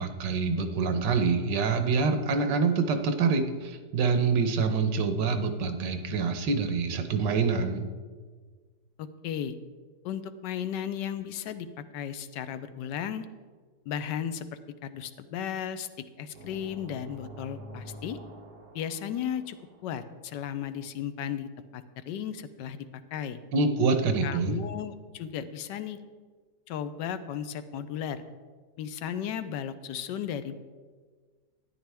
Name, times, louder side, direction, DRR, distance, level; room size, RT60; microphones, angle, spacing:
voice 1, 0.0-7.9 23.5-24.5, right 4 dB, 85° right, 8 dB, 1.5 m, -26 dB
voice 2, 9.0-9.6 10.0-13.2 13.9-14.5 14.8-15.9 16.2-18.2 18.7-19.6 19.8-23.4 24.2-26.0 26.7-28.2 28.8-30.6, left 9 dB, 90° left, 12 dB, 1.3 m, -35 dB
sound 1, 16.3-20.2, equal, 60° right, 1.5 m, -47 dB
12.5 x 10.0 x 3.4 m, 1.5 s
omnidirectional pair, 1.8 m